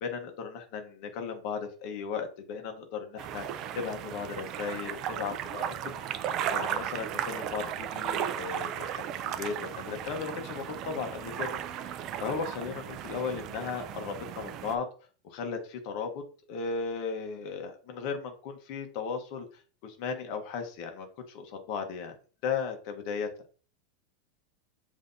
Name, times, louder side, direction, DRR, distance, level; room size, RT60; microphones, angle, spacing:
voice 1, 0.0-3.5 3.7-6.1 6.5-8.9 9.2-11.5 11.8-14.9 15.2-16.2 16.5-19.5 19.8-22.1 22.4-23.3, left 5 dB, 45° left, 5 dB, 0.9 m, -36 dB
sound 1, 3.2-14.8, right 10 dB, 35° right, 0.4 m, -35 dB
7.4 x 2.7 x 2.6 m, 0.38 s
supercardioid pair, 165°, 0 cm